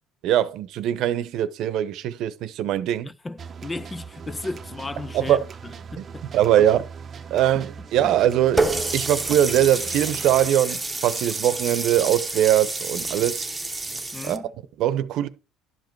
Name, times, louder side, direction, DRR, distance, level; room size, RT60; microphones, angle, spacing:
voice 1, 0.2-3.1 5.1-5.4 6.0-6.1 6.3-6.8 7.3-13.5 14.2-14.4 14.8-15.3, right 11 dB, 60° right, 0.9 m, -22 dB
voice 2, 3.0-5.4 5.9-6.3 7.6-7.7 8.0-8.1 14.1-14.5, left 2 dB, 15° left, 0.4 m, -35 dB
sound 1, 3.4-10.5, right 6 dB, 30° right, 0.7 m, -40 dB
Water tap faucet, 8.6-14.4, right 2 dB, 10° right, 1.0 m, -28 dB
11.5 x 5.2 x 4.6 m
cardioid pair, 130°, 0 cm